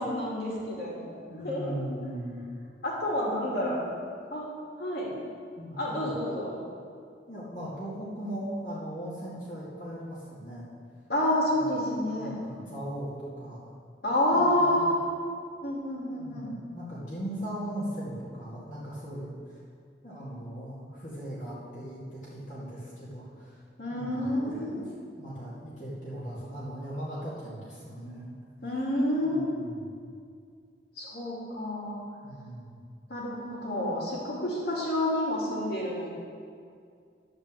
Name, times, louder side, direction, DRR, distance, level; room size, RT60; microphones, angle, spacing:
voice 1, 0.0-1.8 2.8-3.9 4.3-4.4 4.8-5.1 5.8-6.5 11.1-12.3 14.0-14.9 15.6-16.6 23.8-24.9 28.6-29.4 31.0-32.0 33.1-36.1, left 1 dB, 60° left, -5 dB, 2.8 m, -29 dB
voice 2, 1.3-2.4 3.3-3.7 5.6-6.2 7.3-10.7 11.5-13.6 14.3-15.0 16.1-19.6 20.0-23.6 23.9-24.8 25.2-28.3 29.2-29.9 32.2-32.8, right 1 dB, 45° left, -10 dB, 2.3 m, -39 dB
11.0 x 5.1 x 7.6 m, 2.2 s
head